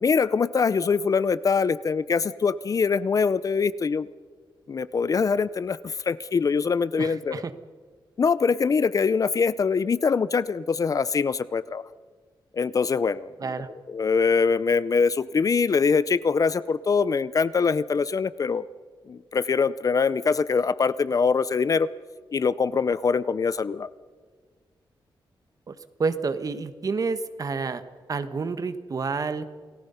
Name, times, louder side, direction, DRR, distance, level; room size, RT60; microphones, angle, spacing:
voice 1, 0.0-4.1 4.7-7.4 8.2-11.8 12.5-13.3 13.9-18.6 19.1-21.9 22.3-23.9, left 5 dB, 45° left, 17 dB, 0.6 m, -23 dB
voice 2, 7.0-7.5 13.4-13.7 25.7-27.8 28.1-29.4, right 4 dB, 45° right, 11 dB, 1.3 m, -29 dB
29.0 x 19.0 x 5.7 m, 1.5 s
wide cardioid pair, 135°, 9 cm